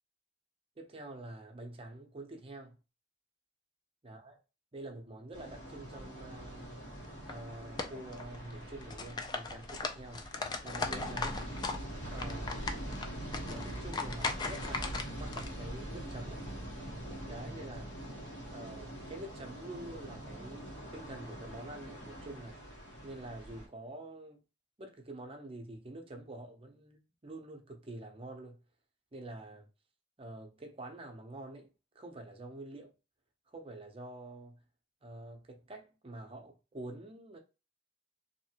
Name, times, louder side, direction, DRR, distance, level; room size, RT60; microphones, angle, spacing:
voice 1, 0.8-2.8 4.0-4.4 4.7-6.8 7.3-10.3 10.6-11.6 12.1-12.9 13.4-16.5 17.2-17.9 18.5-22.6 23.0-24.4 24.8-28.6 29.1-29.7 30.2-31.7 31.9-32.9 33.5-34.6 35.0-37.4, right 1 dB, 30° right, 0.6 m, -47 dB
sound 1, 5.3-23.7, right 1 dB, 75° left, 1.4 m, -43 dB
sound 2, 7.0-7.3 7.8-8.5 8.8-11.8 12.1-15.5, left 4 dB, 25° left, 0.3 m, -38 dB
2.7 x 2.5 x 2.8 m
head